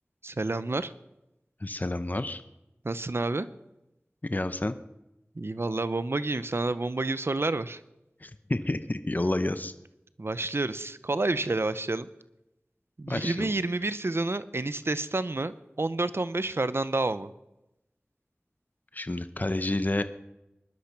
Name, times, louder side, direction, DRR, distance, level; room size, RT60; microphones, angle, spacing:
voice 1, 0.2-0.9 2.8-3.5 5.4-7.8 10.2-12.1 13.0-17.3, right 2 dB, 65° right, 14 dB, 0.8 m, -29 dB
voice 2, 1.6-2.4 4.3-4.8 8.2-9.7 13.1-13.5 18.9-20.0, left 2 dB, 40° left, 10 dB, 0.9 m, -29 dB
20.0 x 12.0 x 6.0 m, 0.93 s
wide cardioid pair, 45°, 5 cm